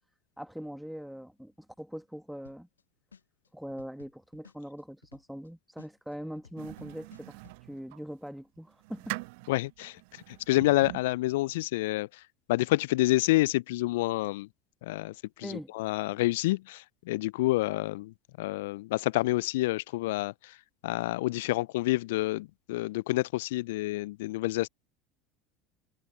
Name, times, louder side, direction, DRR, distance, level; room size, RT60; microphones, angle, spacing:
voice 1, 0.4-2.7 3.5-7.4 7.7-9.2 15.4-15.7, equal, ahead, 2.1 m, -42 dB
sound 1, 2.4-2.8 3.1-5.5 5.8-7.6, left 6 dB, 85° left, 0.8 m, -56 dB
sound 2, 6.6-8.0 8.6-11.3, right 28 dB, 60° right, 0.8 m, -43 dB
voice 2, 9.5-14.5 14.8-24.7, left 19 dB, 65° left, 0.4 m, -29 dB
figure-of-eight pair, 70°, 0 cm